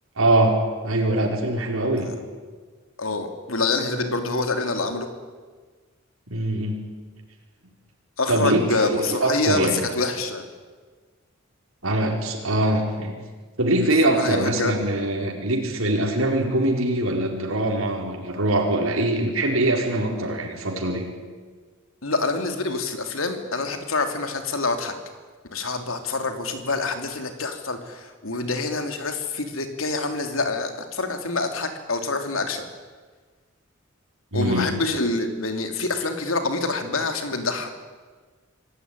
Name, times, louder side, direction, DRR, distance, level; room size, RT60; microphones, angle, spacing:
voice 1, 0.2-2.1 6.3-6.8 8.3-9.8 11.8-13.1 13.6-21.1 34.3-34.7, right 1 dB, 85° right, 1 dB, 4.7 m, -23 dB
voice 2, 3.0-5.1 8.2-10.5 14.1-14.8 22.0-25.0 25.5-32.6 34.3-37.8, left 3 dB, 80° left, 6 dB, 3.1 m, -26 dB
26.0 x 17.0 x 9.9 m, 1.5 s
head